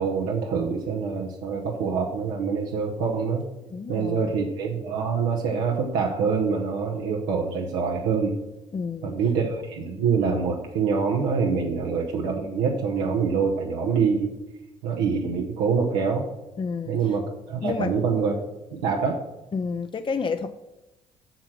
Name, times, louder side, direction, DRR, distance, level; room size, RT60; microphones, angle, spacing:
voice 1, 0.0-3.4 3.9-8.4 9.0-14.3 14.8-16.2 16.9-18.3 18.7-19.2, right 5 dB, 90° right, 0 dB, 1.0 m, -25 dB
voice 2, 3.7-4.4 8.7-9.2 16.6-17.2 17.6-18.0 19.5-20.6, left 5 dB, 30° left, 8 dB, 0.6 m, -30 dB
8.0 x 6.5 x 6.1 m, 0.97 s
supercardioid pair, 65°, 16 cm